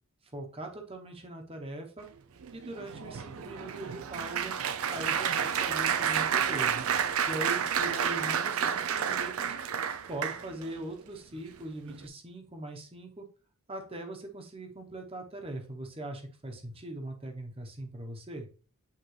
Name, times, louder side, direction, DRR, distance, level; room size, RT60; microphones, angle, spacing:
voice 1, 0.3-2.1 2.5-4.6 4.9-6.9 7.3-9.5 10.1-13.3 13.7-18.5, right 1 dB, 25° right, 3 dB, 1.0 m, -41 dB
Applause, 2.4-10.7 11.4-11.6 11.9-12.1, right 8 dB, 70° right, 0.5 m, -30 dB
8.2 x 3.7 x 3.2 m, 0.40 s
head